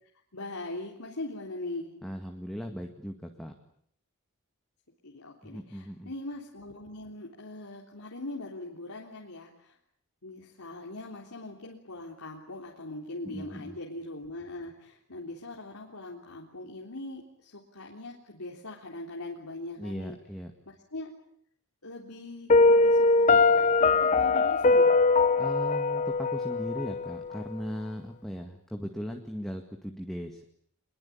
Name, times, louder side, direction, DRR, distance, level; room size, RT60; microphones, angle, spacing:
voice 1, 0.3-1.9 5.0-9.8 10.2-20.2 20.7-21.1 21.8-24.9, left 2 dB, 85° left, -2 dB, 3.6 m, -41 dB
voice 2, 2.0-3.5 5.4-6.1 13.3-13.8 19.8-20.5 25.4-30.4, equal, ahead, 3 dB, 2.0 m, -38 dB
Piano, 22.5-27.4, left 3 dB, 35° left, 1.0 m, -22 dB
25.0 x 22.0 x 8.7 m, 0.66 s
head